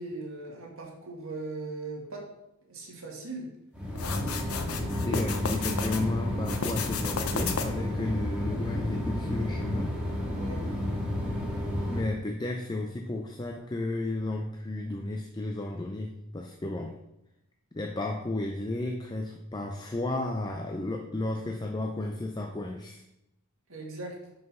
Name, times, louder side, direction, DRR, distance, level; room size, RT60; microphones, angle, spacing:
voice 1, 0.0-2.2 2.7-3.5 10.3-10.6 23.7-24.2, right 3 dB, 65° right, -1 dB, 1.9 m, -39 dB
sound 1, 3.7-12.0, left 1 dB, 5° right, 1.7 m, -31 dB
sound 2, 4.0-6.0 6.4-7.9, left 5 dB, 85° left, 0.8 m, -33 dB
voice 2, 5.0-10.0 11.9-17.0 17.7-23.0, left 2 dB, 20° left, 2 dB, 0.5 m, -33 dB
5.6 x 5.5 x 5.4 m, 0.89 s
head